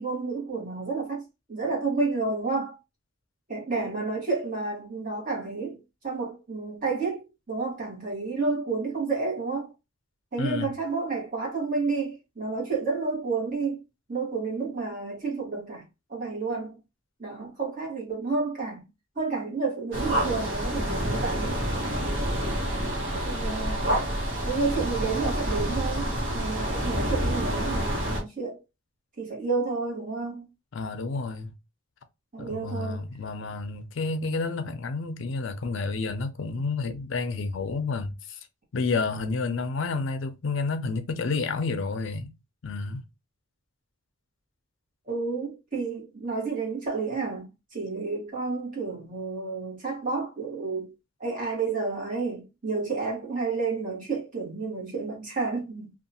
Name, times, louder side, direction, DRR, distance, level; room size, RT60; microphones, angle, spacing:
voice 1, 0.0-2.8 3.5-5.8 6.0-9.7 10.3-13.8 14.1-15.8 16.1-16.8 17.2-18.8 19.1-21.6 23.1-24.0 24.4-26.1 26.3-28.6 29.2-30.5 32.3-33.0 45.1-50.9 51.2-55.9, right 4 dB, 40° right, 1.2 m, -30 dB
voice 2, 10.4-10.7 30.7-31.5 32.4-38.4 38.7-42.3 42.6-43.0, left 4 dB, 65° left, 0.4 m, -30 dB
sound 1, 19.9-28.2, equal, 65° right, 1.1 m, -28 dB
2.7 x 2.3 x 2.7 m
head